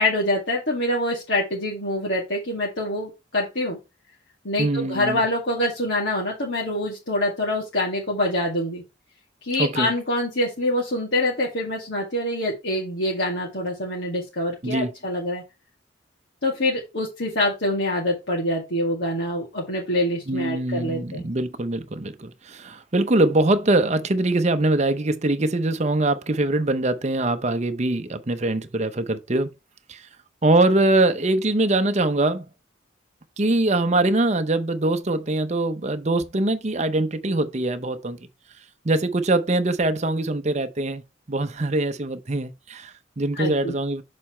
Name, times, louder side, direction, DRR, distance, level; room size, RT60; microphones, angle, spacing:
voice 1, 0.0-3.8 4.4-8.8 9.4-15.4 16.4-21.2 43.3-43.7, left 1 dB, 65° left, 2.1 m, -25 dB
voice 2, 4.6-5.2 9.6-9.9 14.6-14.9 20.3-29.5 29.9-30.1 30.4-32.4 33.4-38.3 38.8-41.0 41.3-44.0, right 2 dB, 35° right, 0.7 m, -23 dB
6.8 x 4.2 x 4.3 m
head